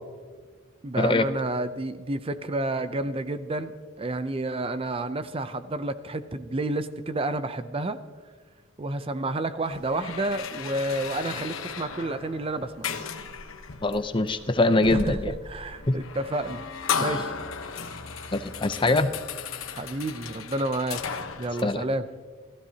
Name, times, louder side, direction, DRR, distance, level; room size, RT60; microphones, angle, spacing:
voice 1, 0.8-3.7 4.0-8.0 8.8-13.0 14.9-16.6 17.0-17.3 19.7-21.0 21.4-22.1, right 2 dB, 25° right, 11 dB, 0.5 m, -30 dB
sound 1, 9.6-21.6, left 6 dB, 80° left, 1.1 m, -35 dB
voice 2, 13.8-15.3 15.9-16.0 18.3-19.1 21.6-21.8, left 2 dB, 25° left, 10 dB, 0.6 m, -23 dB
29.0 x 15.0 x 2.8 m, 1.5 s
head